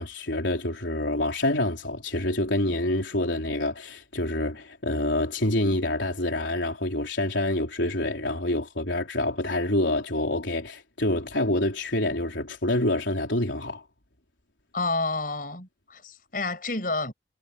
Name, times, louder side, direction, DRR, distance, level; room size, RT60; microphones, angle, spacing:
voice 1, 0.0-13.8, left 1 dB, 85° left, 4.0 m, -27 dB
voice 2, 14.7-17.1, left 3 dB, 50° left, 6.5 m, -29 dB
head